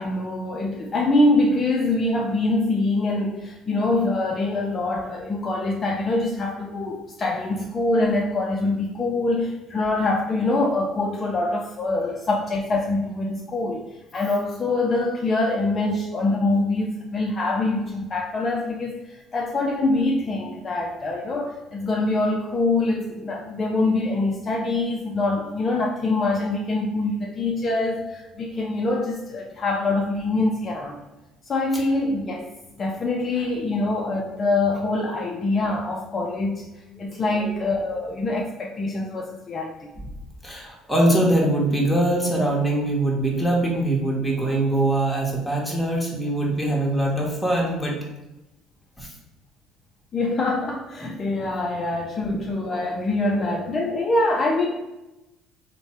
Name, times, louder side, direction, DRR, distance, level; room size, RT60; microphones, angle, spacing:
voice 1, 0.0-31.0 31.5-32.5 32.8-36.7 37.0-39.9 50.1-54.7, left 2 dB, 40° left, 0 dB, 0.4 m, -24 dB
voice 2, 37.2-37.8 40.0-40.1 40.4-48.0 49.0-49.1 51.1-51.5 52.3-52.4 53.3-53.6, right 1 dB, 5° left, -2 dB, 1.2 m, -23 dB
3.2 x 2.2 x 4.2 m, 0.99 s
supercardioid pair, 75°, 0 cm